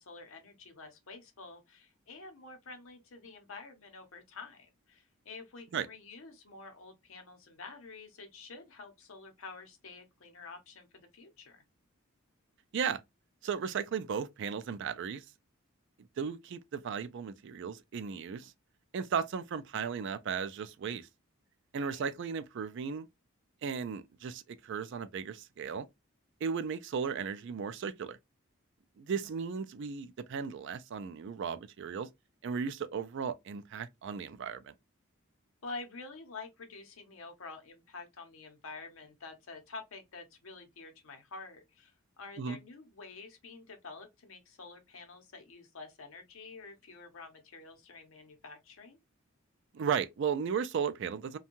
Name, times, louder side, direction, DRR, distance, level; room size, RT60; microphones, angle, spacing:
voice 1, 0.0-11.6 21.8-22.1 35.6-49.0, left 3 dB, 65° left, 0.7 m, -48 dB
voice 2, 13.4-15.2 16.2-18.5 18.9-21.1 21.7-23.1 23.6-25.9 26.4-28.2 29.0-32.1 32.4-34.7 42.4-42.6 49.7-51.4, right 6 dB, 55° right, 0.3 m, -35 dB
2.6 x 2.2 x 2.8 m
head